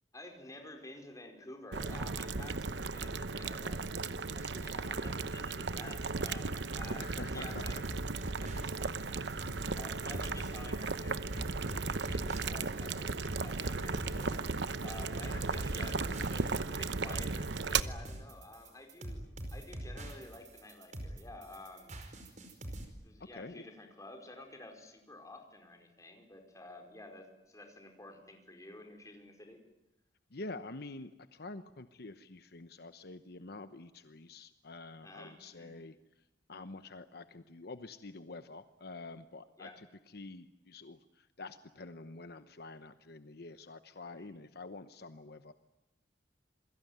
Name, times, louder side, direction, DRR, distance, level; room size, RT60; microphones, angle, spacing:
voice 1, 0.1-7.8 8.3-22.0 23.0-29.6 35.0-35.7 39.6-39.8 44.2-44.4, left 2 dB, 20° left, 4 dB, 4.9 m, -51 dB
Boiling, 1.7-17.8, right 4 dB, 75° right, 0.9 m, -36 dB
voice 2, 7.0-7.6 8.3-8.4 15.3-15.5 23.3-23.6 30.3-36.0 36.5-45.5, left 3 dB, 65° left, 10 dB, 1.0 m, -47 dB
sound 1, 7.5-22.9, right 1 dB, 45° right, 5.0 m, -44 dB
27.5 x 22.5 x 9.4 m, 0.91 s
head